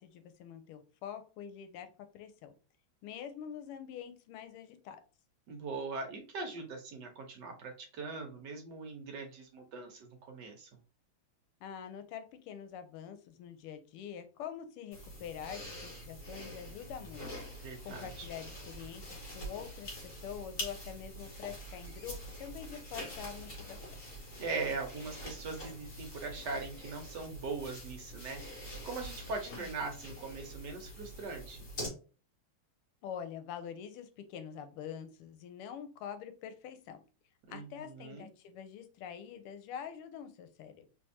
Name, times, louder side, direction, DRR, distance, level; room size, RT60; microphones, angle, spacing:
voice 1, 0.0-2.5 3.0-5.0 11.6-17.3 17.8-23.8 29.4-29.9 33.0-37.0 37.5-40.9, left 8 dB, 90° left, 9 dB, 1.5 m, -45 dB
voice 2, 5.5-10.7 17.6-18.3 24.4-31.6 37.5-38.3, right 4 dB, 60° right, 3 dB, 1.2 m, -41 dB
sound 1, 14.9-31.9, equal, 40° left, 1.6 m, -45 dB
3.4 x 3.2 x 2.7 m, 0.35 s
omnidirectional pair, 2.4 m